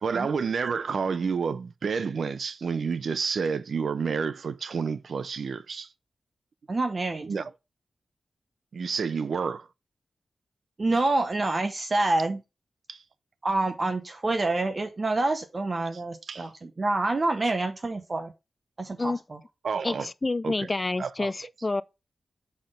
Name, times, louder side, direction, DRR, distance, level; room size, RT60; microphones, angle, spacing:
voice 1, 0.0-5.9 7.2-7.5 8.7-9.7 12.9-13.0 16.3-16.5 19.6-20.1 20.4-20.7 21.0-21.3, right 5 dB, 70° right, 0.5 m, -29 dB
voice 2, 6.7-7.3 10.8-12.4 13.4-18.3 18.8-19.4, right 2 dB, 35° right, 0.8 m, -27 dB
voice 3, 19.8-21.8, left 3 dB, 25° left, 0.3 m, -28 dB
5.8 x 4.2 x 4.9 m
wide cardioid pair, 130°, 0 cm